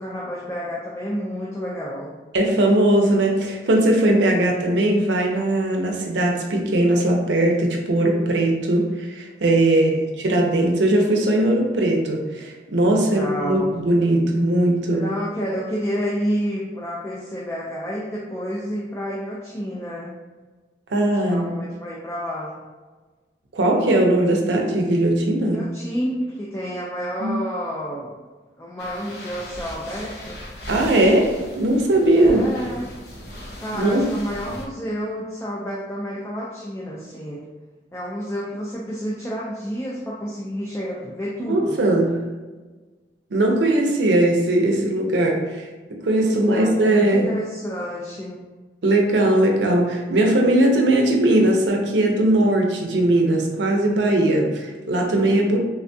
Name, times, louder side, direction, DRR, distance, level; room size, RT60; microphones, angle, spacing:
voice 1, 0.0-2.2 9.7-10.3 12.9-13.7 14.9-20.1 21.2-22.6 25.4-28.1 28.6-30.4 32.2-32.8 33.6-37.4 37.9-41.8 46.2-48.4, equal, 15° left, -5 dB, 0.3 m, -30 dB
voice 2, 2.3-15.0 20.9-21.5 23.5-25.6 27.2-27.4 30.7-32.4 33.7-34.1 41.5-42.2 43.3-45.6 45.9-47.3 48.8-55.6, right 1 dB, 85° right, 1 dB, 0.6 m, -19 dB
sound 1, 28.8-34.7, left 1 dB, 60° left, 0.7 m, -38 dB
3.4 x 2.2 x 2.6 m, 1.3 s
head